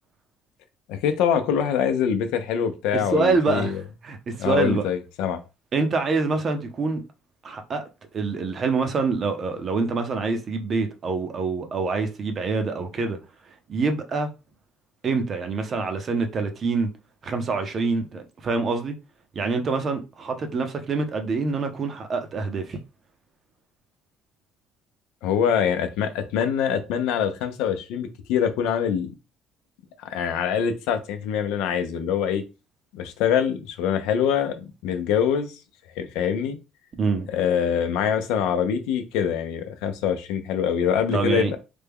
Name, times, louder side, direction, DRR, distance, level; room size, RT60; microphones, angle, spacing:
voice 1, 0.9-3.7 4.4-5.4 25.2-29.1 30.0-32.4 32.9-35.6 36.0-36.6 37.3-41.6, left 8 dB, 85° left, 0.5 m, -24 dB
voice 2, 3.1-4.8 5.7-7.0 7.4-7.8 8.1-13.2 13.7-14.3 15.0-16.9 17.2-19.0 19.3-22.8 37.0-37.3 41.1-41.6, right 4 dB, 40° right, 0.6 m, -25 dB
3.3 x 2.2 x 3.4 m
cardioid pair, 125°, 0 cm